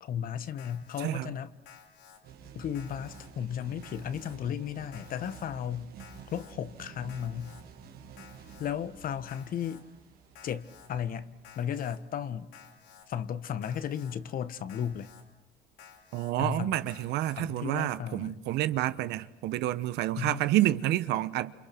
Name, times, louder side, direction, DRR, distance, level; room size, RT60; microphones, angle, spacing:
voice 1, 0.0-1.5 2.5-5.9 6.3-7.6 8.6-9.8 10.4-12.5 13.1-15.1 16.4-16.8 17.4-18.4 20.2-20.4, left 9 dB, 55° left, 1.5 m, -35 dB
Alarm, 0.6-1.1 1.7-2.2 2.7-3.3 3.8-4.4 4.9-5.5 6.0-6.5 7.1-7.6 8.2-8.7 9.3-9.8 10.4-10.9 11.4-12.0 12.5-13.1 13.6-14.2 14.7-15.2 15.8-16.3 16.9-17.4, left 8 dB, 85° left, 3.9 m, -54 dB
voice 2, 1.0-1.3 16.1-21.5, right 14 dB, 85° right, 1.1 m, -29 dB
sound 1, 2.2-16.0, right 6 dB, 65° right, 3.3 m, -51 dB
28.5 x 28.0 x 6.0 m
cardioid pair, 110°, 17 cm